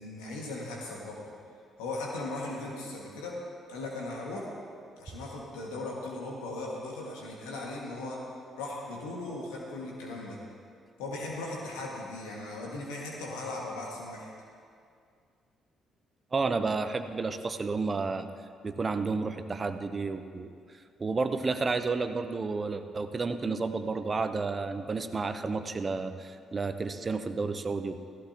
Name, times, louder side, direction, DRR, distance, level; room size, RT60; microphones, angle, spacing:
voice 1, 0.0-1.3 1.8-3.4 3.7-4.5 5.0-8.2 8.6-10.4 11.0-14.3, left 2 dB, 75° left, -3 dB, 2.0 m, -38 dB
voice 2, 16.3-18.3 18.6-20.6 21.0-28.0, right 4 dB, 35° right, 9 dB, 0.9 m, -31 dB
16.5 x 15.5 x 3.0 m, 2.2 s
hypercardioid pair, 45°, 0 cm